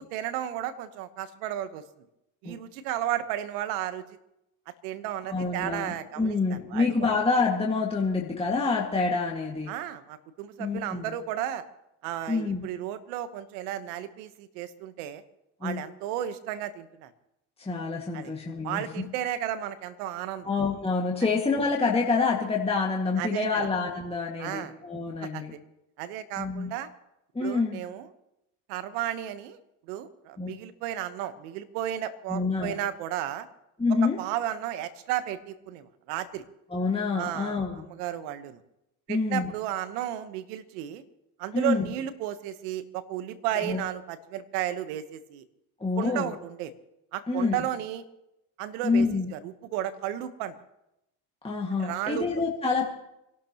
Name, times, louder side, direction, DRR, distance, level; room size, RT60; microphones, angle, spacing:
voice 1, 0.1-1.8 2.4-4.0 4.8-6.9 9.7-11.6 12.0-15.2 15.6-17.1 18.1-18.3 18.6-20.5 23.2-23.7 24.4-24.7 25.2-25.6 26.0-26.9 27.4-28.1 28.7-29.6 29.9-33.5 33.9-36.4 37.1-38.6 39.1-41.0 41.4-45.5 46.0-46.7 47.1-48.0 48.6-49.1 49.3-50.5 51.8-52.3, right 11 dB, 85° right, 12 dB, 1.2 m, -33 dB
voice 2, 5.3-9.7 10.6-11.1 12.3-12.7 15.6-15.8 17.6-18.8 20.4-25.5 26.4-26.7 27.3-27.8 30.4-30.5 32.3-32.8 33.8-34.2 36.7-37.8 39.1-39.5 41.5-41.9 43.6-43.8 45.8-46.3 47.3-47.6 48.8-49.3 51.4-52.9, left 4 dB, 15° left, -2 dB, 1.9 m, -27 dB
27.0 x 12.0 x 3.0 m, 0.87 s
supercardioid pair, 80°, 45 cm